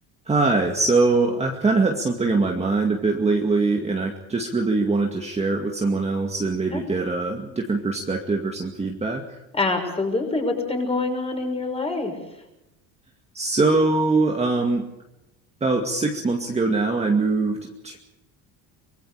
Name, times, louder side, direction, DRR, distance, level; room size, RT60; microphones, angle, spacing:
voice 1, 0.3-9.2 13.3-14.8 15.6-17.6 17.8-18.0, right 3 dB, 15° right, 1 dB, 2.2 m, -22 dB
voice 2, 9.5-12.2, left 3 dB, 15° left, 3 dB, 6.0 m, -25 dB
25.0 x 23.0 x 5.0 m, 0.93 s
cardioid pair, 140°, 41 cm